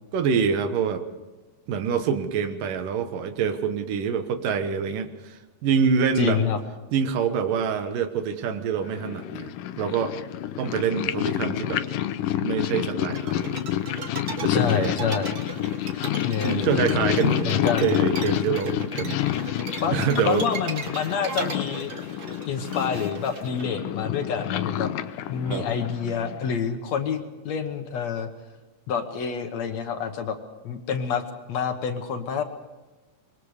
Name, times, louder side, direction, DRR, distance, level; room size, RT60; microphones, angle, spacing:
voice 1, 0.1-1.0 1.7-6.4 6.9-10.2 10.6-11.8 12.4-13.6 14.3-15.1 16.4-19.6 19.9-20.5 25.5-25.7, right 6 dB, 80° right, 8 dB, 2.9 m, -26 dB
voice 2, 6.2-6.6 14.4-15.3 16.2-16.7 17.5-17.9 19.8-20.0 20.2-21.9 22.5-24.9 25.3-28.3 28.9-30.4 30.6-31.2 31.5-32.4, left 7 dB, 60° left, 6 dB, 2.2 m, -27 dB
Purr, 8.9-26.5, left 12 dB, 80° left, 2.4 m, -28 dB
sound 1, 13.2-23.6, right 3 dB, 40° right, 1.5 m, -37 dB
25.5 x 22.0 x 4.9 m, 1.1 s
omnidirectional pair, 3.8 m